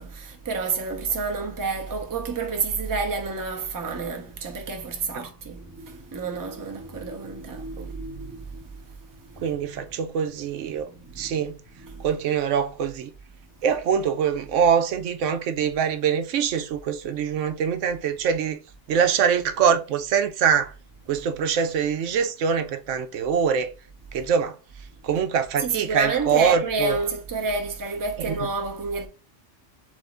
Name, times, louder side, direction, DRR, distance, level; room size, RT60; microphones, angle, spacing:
voice 1, 0.0-9.5 10.9-11.5 11.8-12.1 25.6-29.1, right 4 dB, 20° right, 0.6 m, -30 dB
voice 2, 9.4-10.9 11.2-11.6 12.0-13.1 13.6-18.6 18.9-20.7 21.1-23.7 24.1-24.5 25.0-27.0 28.2-28.4, right 7 dB, 85° right, 1.0 m, -24 dB
3.5 x 3.4 x 3.7 m
omnidirectional pair, 1.2 m